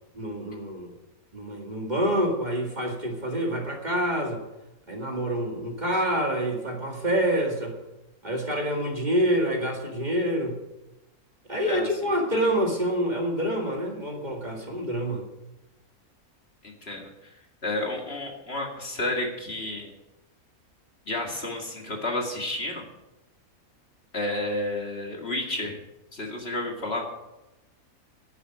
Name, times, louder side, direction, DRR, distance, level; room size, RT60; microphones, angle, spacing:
voice 1, 0.1-0.9 1.3-4.4 4.9-7.8 8.2-10.6 11.5-15.2, equal, 30° right, 1 dB, 2.1 m, -27 dB
voice 2, 16.6-17.3 17.6-19.9 21.1-22.8 24.1-25.8 26.1-27.1, left 1 dB, 45° left, 1 dB, 2.3 m, -31 dB
10.5 x 7.8 x 9.8 m, 0.96 s
omnidirectional pair, 1.5 m